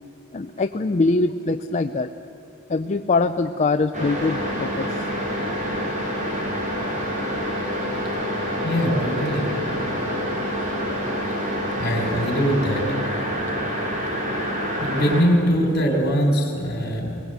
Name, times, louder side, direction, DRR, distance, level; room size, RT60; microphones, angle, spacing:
voice 1, 0.3-2.1 2.7-4.9, left 3 dB, 35° left, 7 dB, 0.5 m, -23 dB
sound 1, 3.9-15.2, equal, 35° right, 4.3 m, -27 dB
voice 2, 8.6-9.5 11.8-12.8 14.8-17.2, equal, 50° left, 2 dB, 4.4 m, -22 dB
23.0 x 19.0 x 8.2 m, 2.6 s
head